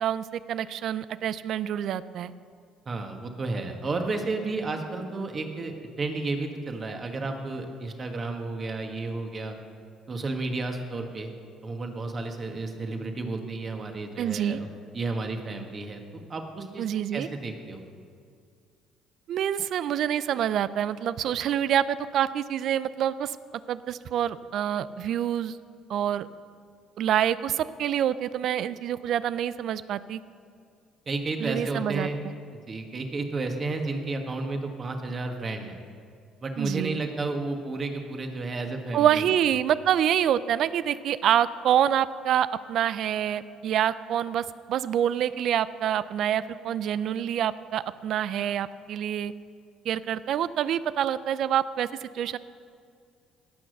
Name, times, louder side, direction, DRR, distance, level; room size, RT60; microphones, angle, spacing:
voice 1, 0.0-2.3 14.2-14.6 16.8-17.3 19.3-23.4 23.7-25.6 25.9-26.3 27.0-30.2 31.4-32.1 36.6-37.0 38.9-49.3 49.9-52.4, right 10 dB, 65° right, 16 dB, 0.4 m, -26 dB
voice 2, 2.9-9.6 10.1-11.3 11.6-14.7 14.9-16.9 17.1-17.8 31.1-32.2 32.7-35.8 36.4-39.3, right 3 dB, 40° right, 4 dB, 1.7 m, -32 dB
17.0 x 6.2 x 6.7 m, 2.3 s
supercardioid pair, 70°, 0 cm